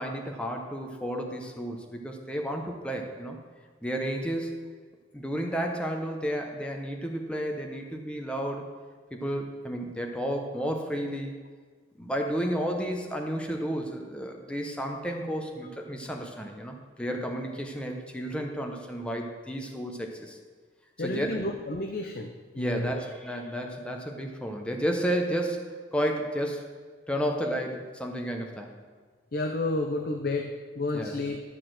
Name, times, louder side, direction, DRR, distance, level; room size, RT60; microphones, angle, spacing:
voice 1, 0.0-3.4 3.8-4.6 5.1-8.6 9.1-11.3 12.0-20.4 21.0-21.5 22.5-26.6 27.1-28.8 30.9-31.2, equal, 5° left, 2 dB, 0.9 m, -32 dB
voice 2, 21.0-22.3 22.6-22.9 29.3-31.4, left 2 dB, 55° left, 5 dB, 0.6 m, -31 dB
12.0 x 4.3 x 7.7 m, 1.5 s
head